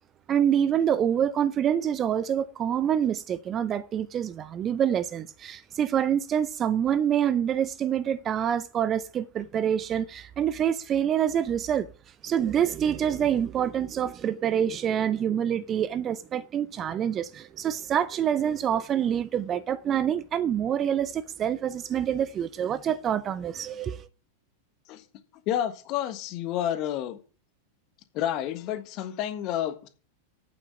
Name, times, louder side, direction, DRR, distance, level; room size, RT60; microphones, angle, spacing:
voice 1, 0.3-11.9 12.2-24.1, right 9 dB, 25° right, 0.6 m, -26 dB
voice 2, 25.5-27.2 28.1-29.9, left 11 dB, 40° left, 1.4 m, -30 dB
8.7 x 7.4 x 7.0 m
figure-of-eight pair, 90°, 0 cm